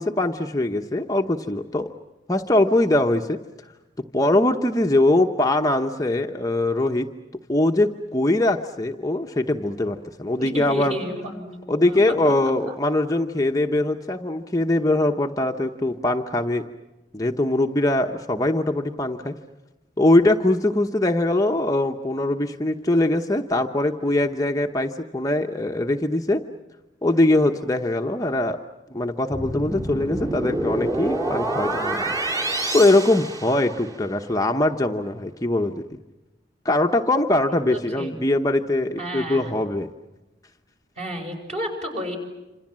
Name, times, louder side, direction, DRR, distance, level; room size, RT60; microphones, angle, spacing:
voice 1, 0.0-1.9 2.3-3.4 4.1-7.1 7.5-10.9 11.7-16.6 17.1-19.3 20.0-26.4 27.0-28.6 28.9-32.5 32.7-35.7 36.6-39.9, left 1 dB, 20° left, 4 dB, 0.9 m, -22 dB
voice 2, 10.4-12.0 12.2-12.3 12.7-12.8 37.5-38.1 39.0-39.5 41.0-42.2, equal, 35° right, 3 dB, 5.9 m, -32 dB
sound 1, 29.3-34.1, right 2 dB, 20° right, 2.3 m, -27 dB
27.0 x 27.0 x 7.5 m, 1.1 s
head